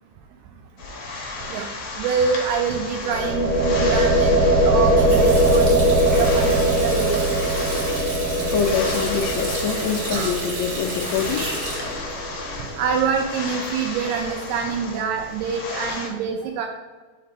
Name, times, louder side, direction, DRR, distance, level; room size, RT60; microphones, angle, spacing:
sound 1, 0.8-16.1, left 3 dB, 60° left, 1.4 m, -34 dB
voice 1, 2.0-7.4 10.1-10.3 12.8-16.7, right 5 dB, 85° right, 3 dB, 2.0 m, -26 dB
sound 2, 3.0-12.9, right 1 dB, 55° right, 2.4 m, -21 dB
Water tap faucet, 4.8-13.2, right 1 dB, 40° right, 2.4 m, -32 dB
voice 2, 8.5-11.5, left 7 dB, 80° left, 2 dB, 1.7 m, -25 dB
5.1 x 4.3 x 5.0 m, 1.3 s
omnidirectional pair, 3.4 m